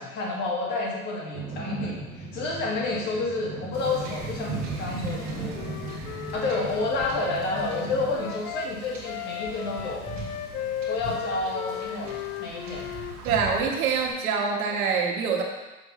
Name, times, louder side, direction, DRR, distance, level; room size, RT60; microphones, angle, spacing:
voice 1, 0.0-5.6 6.3-10.1 10.9-12.9, left 3 dB, 25° left, -2 dB, 1.3 m, -30 dB
sound 1, 1.3-8.1, right 3 dB, 10° right, 0.5 m, -38 dB
Wind / Ocean / Boat Water vehicle, 3.7-14.1, right 3 dB, 30° right, 1.9 m, -40 dB
Wind instrument woodwind instrument, 5.1-8.7 9.0-13.2, left 11 dB, 85° left, 0.6 m, -36 dB
voice 2, 13.2-15.4, right 5 dB, 75° right, 0 dB, 1.6 m, -25 dB
7.2 x 3.3 x 5.8 m, 1.1 s
supercardioid pair, 170°, 43 cm